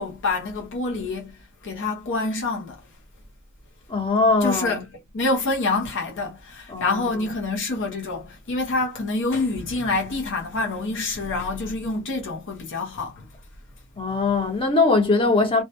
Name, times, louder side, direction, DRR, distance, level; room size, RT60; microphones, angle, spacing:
voice 1, 0.0-2.8 4.4-4.8 5.1-13.3, left 3 dB, 55° left, 0.7 m, -27 dB
voice 2, 3.9-4.8 6.7-7.2 14.0-15.6, left 3 dB, 25° left, 0.8 m, -21 dB
2.2 x 2.1 x 2.7 m
head